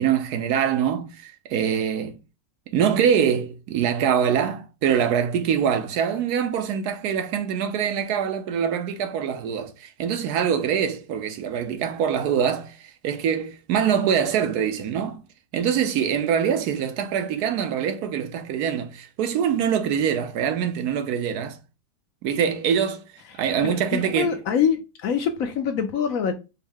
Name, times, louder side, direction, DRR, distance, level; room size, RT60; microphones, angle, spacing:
voice 1, 0.0-2.2 2.7-15.2 15.5-21.6 22.2-23.1 23.4-24.3, right 8 dB, 75° right, 1.1 m, -24 dB
voice 2, 23.6-26.3, left 7 dB, 65° left, 1.0 m, -25 dB
4.5 x 2.1 x 3.4 m
omnidirectional pair, 1.7 m